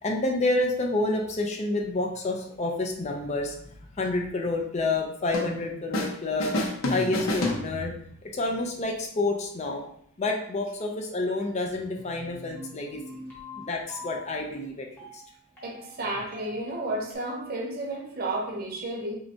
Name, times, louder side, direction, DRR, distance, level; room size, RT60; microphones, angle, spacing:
voice 1, 0.0-6.6 6.9-8.0 8.2-9.9 10.2-13.2 13.6-14.9 15.1-15.2, left 2 dB, 35° left, 1 dB, 0.5 m, -29 dB
sound 1, 5.3-6.1 6.4-8.2, left 1 dB, 70° left, 0.7 m, -29 dB
sound 2, 12.0-17.2, left 3 dB, 10° left, 1.1 m, -45 dB
voice 2, 15.6-19.1, right 2 dB, 45° right, 0 dB, 0.7 m, -32 dB
5.6 x 2.2 x 2.7 m, 0.66 s
head